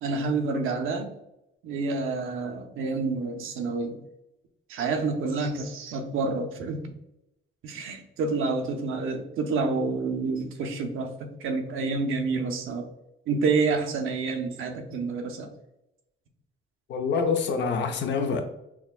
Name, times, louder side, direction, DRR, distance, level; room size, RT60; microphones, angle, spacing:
voice 1, 0.0-1.2 1.6-4.0 4.7-6.9 7.6-12.9 13.3-15.5, right 4 dB, 80° right, 0.7 m, -28 dB
voice 2, 16.9-18.4, left 5 dB, 60° left, 0.6 m, -26 dB
5.8 x 2.2 x 2.4 m
cardioid pair, 130°, 21 cm